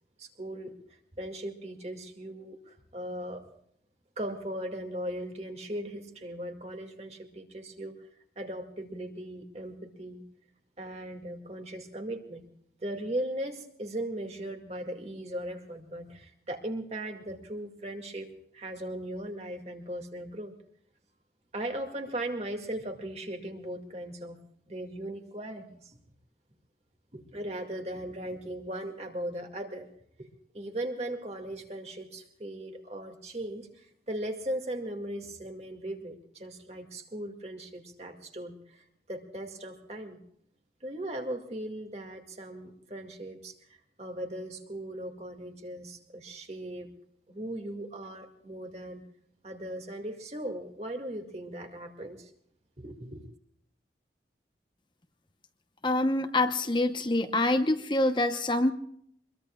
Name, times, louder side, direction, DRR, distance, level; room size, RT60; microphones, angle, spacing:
voice 1, 0.2-0.7 1.2-3.5 4.2-7.9 8.4-10.2 10.8-12.5 12.8-18.3 18.5-20.5 21.5-24.4 24.7-26.0 27.1-29.9 30.2-30.3 30.5-40.2 40.8-46.9 47.3-49.0 49.4-52.3 52.8-53.2, right 1 dB, 35° right, 4 dB, 2.2 m, -38 dB
voice 2, 55.8-58.7, left 2 dB, 25° left, 6 dB, 0.9 m, -26 dB
25.5 x 22.0 x 2.4 m, 0.67 s
head